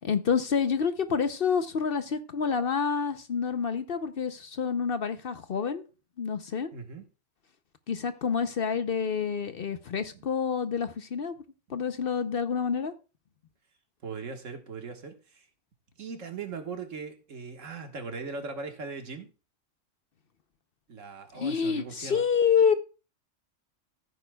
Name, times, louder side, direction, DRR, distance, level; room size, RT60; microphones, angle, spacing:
voice 1, 0.0-5.9 6.2-6.7 7.9-11.4 11.7-12.9 21.3-22.7, left 6 dB, 55° left, 0.8 m, -28 dB
voice 2, 6.7-7.0 10.1-10.2 14.0-15.4 16.0-19.3 20.9-22.3, right 4 dB, 80° right, 1.8 m, -39 dB
15.0 x 8.5 x 2.3 m
omnidirectional pair, 1.3 m